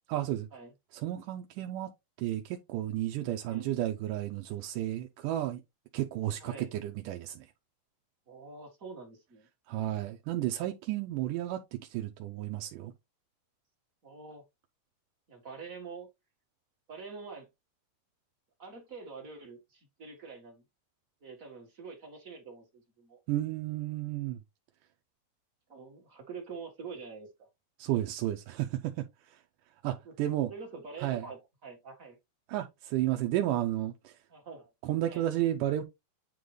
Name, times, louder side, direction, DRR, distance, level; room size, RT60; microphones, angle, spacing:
voice 1, 0.1-0.5 0.9-1.9 2.2-5.6 5.9-7.5 9.7-12.9 23.3-24.4 27.8-29.4 29.8-30.5 31.0-31.3 32.5-34.2 34.8-35.8, right 13 dB, 80° right, 2.2 m, -32 dB
voice 2, 8.3-9.5 14.0-14.4 15.3-16.1 16.9-17.5 18.6-20.6 21.2-23.2 25.7-27.5 30.0-30.1 30.5-32.2 34.3-34.7 35.1-35.2, right 5 dB, 40° right, 1.3 m, -46 dB
9.3 x 3.9 x 3.2 m
omnidirectional pair, 3.9 m